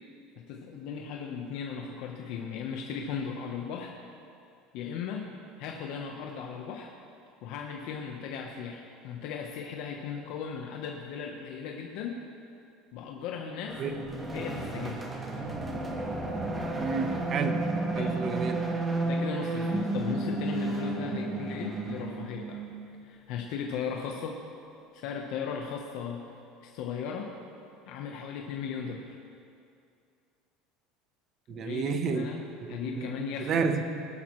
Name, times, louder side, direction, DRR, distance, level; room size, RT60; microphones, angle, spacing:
voice 1, 0.5-4.0 4.7-5.3 5.6-6.9 7.4-12.2 12.9-13.8 14.3-15.0 17.9-18.2 19.0-22.6 23.0-24.4 24.9-26.2 26.6-27.3 27.9-29.2 31.5-32.4 32.7-33.5, left 6 dB, 60° left, 1 dB, 1.0 m, -37 dB
sound 1, 13.7-22.9, right 2 dB, 15° right, 1.3 m, -32 dB
voice 2, 16.7-17.7 17.9-18.6 31.5-32.3 32.6-33.8, right 5 dB, 35° right, 7 dB, 1.0 m, -31 dB
20.0 x 12.0 x 3.2 m, 2.5 s
cardioid pair, 150°, 0 cm